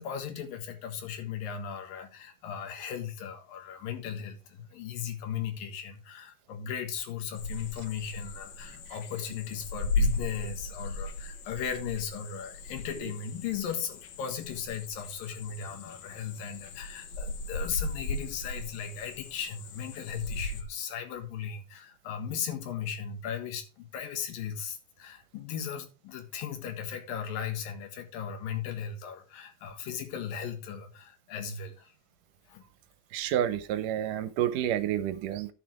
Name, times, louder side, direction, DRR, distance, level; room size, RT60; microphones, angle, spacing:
voice 1, 0.0-31.9 32.5-32.6, left 8 dB, 80° left, 3.3 m, -37 dB
sound 1, 7.4-20.6, left 2 dB, 65° left, 2.2 m, -36 dB
voice 2, 33.1-35.5, right 10 dB, 75° right, 2.2 m, -29 dB
11.0 x 6.6 x 4.6 m
omnidirectional pair, 4.0 m